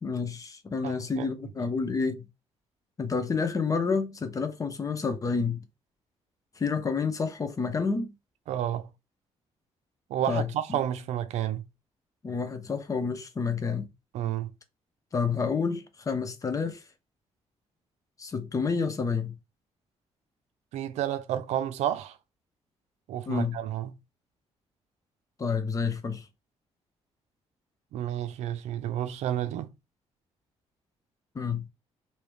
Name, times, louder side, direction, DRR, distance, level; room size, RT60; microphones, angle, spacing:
voice 1, 0.0-2.3 3.0-5.6 6.6-8.1 10.3-10.8 12.2-13.9 15.1-16.8 18.2-19.4 23.3-23.6 25.4-26.3 31.3-31.6, left 5 dB, 30° left, 0.7 m, -29 dB
voice 2, 0.8-1.3 8.5-8.9 10.1-11.6 14.1-14.5 20.7-22.2 23.1-24.0 27.9-29.7, right 11 dB, 90° right, 0.5 m, -30 dB
3.4 x 2.8 x 3.1 m
cardioid pair, 115°, 11 cm